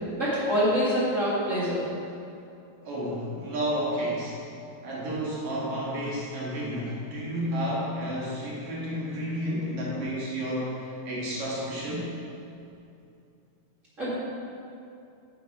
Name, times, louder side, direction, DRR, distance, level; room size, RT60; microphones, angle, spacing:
voice 1, 0.2-1.9 14.0-14.1, equal, 35° right, -9 dB, 1.2 m, -25 dB
voice 2, 2.8-4.4 4.8-12.1, equal, 55° right, -6 dB, 2.5 m, -31 dB
8.3 x 7.6 x 4.8 m, 2.6 s
omnidirectional pair, 4.6 m